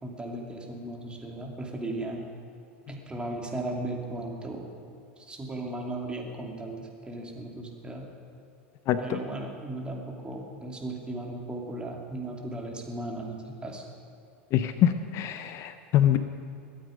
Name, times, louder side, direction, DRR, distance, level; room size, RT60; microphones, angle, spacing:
voice 1, 0.0-2.2 2.9-4.6 5.2-8.1 9.0-13.9, right 2 dB, 15° right, 0 dB, 2.7 m, -36 dB
voice 2, 8.9-9.2 14.5-16.2, left 11 dB, 45° left, 10 dB, 0.7 m, -24 dB
22.0 x 9.2 x 5.2 m, 2.4 s
hypercardioid pair, 95°, 7 cm